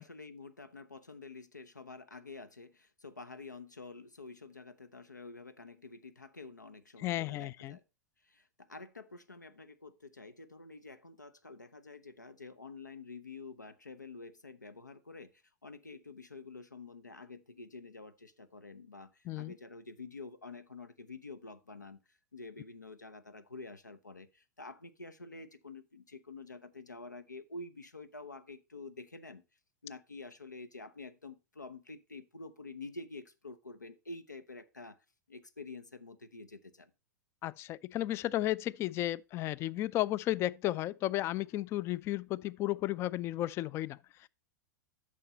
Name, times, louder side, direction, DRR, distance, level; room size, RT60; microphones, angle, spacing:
voice 1, 0.0-7.8 8.2-29.4 29.8-35.0 35.3-36.9, left 3 dB, 85° left, 0.7 m, -48 dB
voice 2, 7.0-7.8 19.3-19.5 37.4-44.3, left 15 dB, 30° left, 0.3 m, -34 dB
8.6 x 6.3 x 4.1 m
figure-of-eight pair, 95°, 9 cm